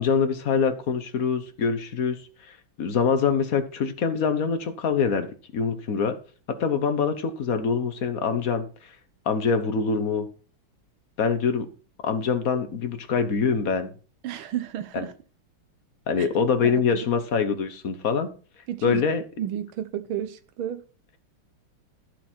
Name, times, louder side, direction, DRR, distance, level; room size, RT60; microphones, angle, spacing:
voice 1, 0.0-2.2 2.8-5.3 5.5-6.2 6.6-8.7 9.3-10.3 11.2-11.7 12.0-13.9 14.9-15.1 16.1-18.3 18.8-19.2, left 5 dB, 50° left, 1.3 m, -24 dB
voice 2, 14.2-15.1 16.6-17.1 18.7-19.0 19.4-20.8, right 10 dB, 80° right, 1.7 m, -32 dB
12.0 x 7.4 x 4.4 m
omnidirectional pair, 2.3 m